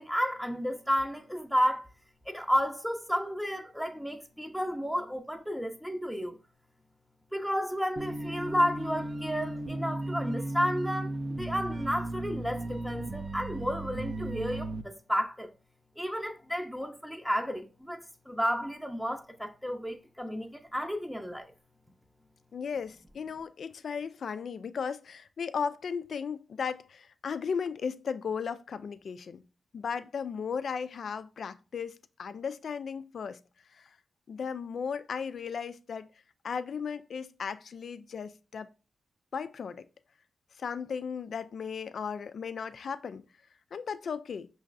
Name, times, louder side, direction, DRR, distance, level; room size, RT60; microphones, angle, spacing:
voice 1, 0.0-1.9 2.3-6.4 7.3-15.5 16.0-21.5, equal, ahead, 0.7 m, -32 dB
sound 1, 8.0-14.8, right 1 dB, 45° right, 0.5 m, -35 dB
voice 2, 22.5-29.4 29.7-33.4 33.7-33.9 34.3-36.1 36.4-38.7 39.3-39.8 40.6-43.2 43.7-44.5, left 6 dB, 70° left, 0.3 m, -36 dB
5.2 x 3.1 x 2.5 m
supercardioid pair, 45°, 0 cm